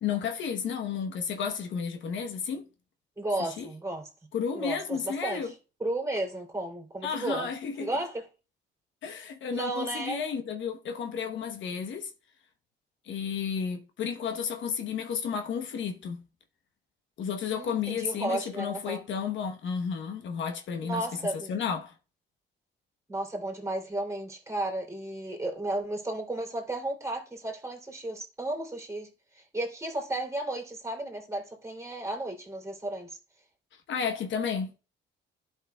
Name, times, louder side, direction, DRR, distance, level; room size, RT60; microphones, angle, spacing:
voice 1, 0.0-2.7 3.6-3.7 4.3-5.5 7.0-7.9 9.0-12.1 13.0-16.2 17.2-21.1 21.5-21.9 33.9-34.7, left 6 dB, 70° left, 1.1 m, -32 dB
voice 2, 3.2-4.1 4.5-5.5 5.8-7.5 7.8-8.3 9.5-10.2 17.5-19.0 20.8-21.5 23.1-33.2, right 2 dB, 15° right, 3.0 m, -33 dB
12.0 x 5.6 x 2.3 m
cardioid pair, 90°, 20 cm